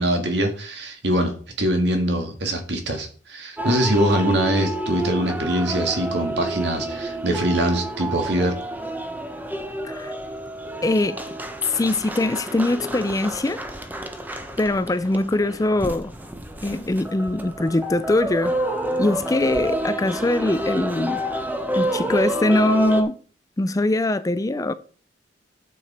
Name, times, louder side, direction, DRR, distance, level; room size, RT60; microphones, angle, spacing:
voice 1, 0.0-8.6, right 1 dB, 65° right, 1.8 m, -23 dB
sound 1, 3.6-23.0, right 1 dB, 10° right, 0.8 m, -29 dB
voice 2, 10.8-11.2 11.7-13.6 14.6-16.1 16.6-18.5 19.0-21.2 21.8-23.1 23.6-24.7, left 2 dB, 20° left, 0.4 m, -22 dB
9.1 x 7.0 x 4.3 m
head